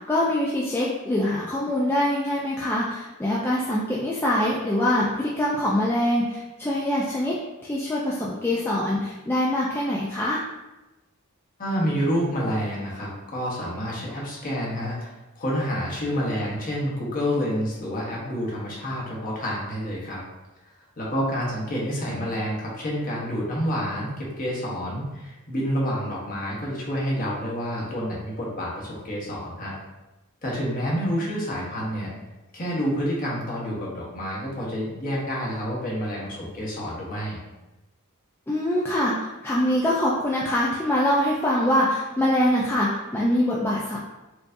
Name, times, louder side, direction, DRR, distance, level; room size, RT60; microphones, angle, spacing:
voice 1, 0.1-7.4 7.6-10.4 38.5-44.0, left 1 dB, 10° left, -5 dB, 0.3 m, -24 dB
voice 2, 11.6-15.1 15.4-20.2 21.0-29.7 30.4-32.1 32.5-37.4, equal, 40° left, -4 dB, 1.0 m, -28 dB
4.5 x 2.6 x 2.6 m, 1.0 s
head